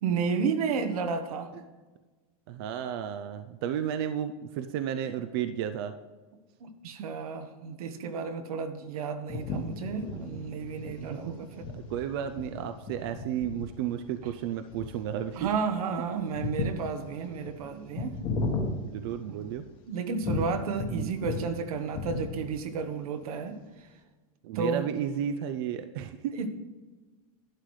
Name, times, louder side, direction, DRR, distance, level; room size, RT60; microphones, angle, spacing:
voice 1, 0.0-1.5 6.6-11.7 15.3-18.1 19.3-19.5 19.9-23.6 24.5-24.9 26.4-26.5, right 5 dB, 80° right, 8 dB, 1.3 m, -32 dB
voice 2, 2.5-5.9 7.0-7.1 11.1-11.3 11.7-15.5 18.8-19.6 20.9-21.1 24.4-26.3, right 9 dB, 45° right, 9 dB, 0.4 m, -33 dB
sound 1, 9.3-19.7 20.2-21.6 21.8-22.7, left 3 dB, 25° left, 1.1 m, -35 dB
11.5 x 10.5 x 3.2 m, 1.3 s
supercardioid pair, 175°, 18 cm